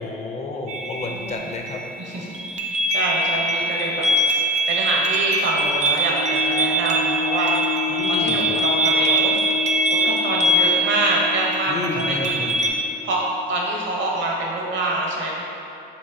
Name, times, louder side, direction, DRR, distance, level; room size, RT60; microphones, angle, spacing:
voice 1, 0.0-1.8 7.9-8.5 11.7-12.6, left 3 dB, 35° left, 2 dB, 0.4 m, -30 dB
sound 1, 0.7-12.7, right 1 dB, 35° right, 0.4 m, -23 dB
voice 2, 1.1-1.4 2.0-2.4 2.9-4.1 4.7-7.5 8.1-9.5 9.9-13.2 13.5-15.4, right 2 dB, 70° right, -2 dB, 0.8 m, -26 dB
sound 2, 5.9-13.3, left 6 dB, 85° left, 0.6 m, -30 dB
4.5 x 2.8 x 2.6 m, 2.7 s
cardioid pair, 90°, 20 cm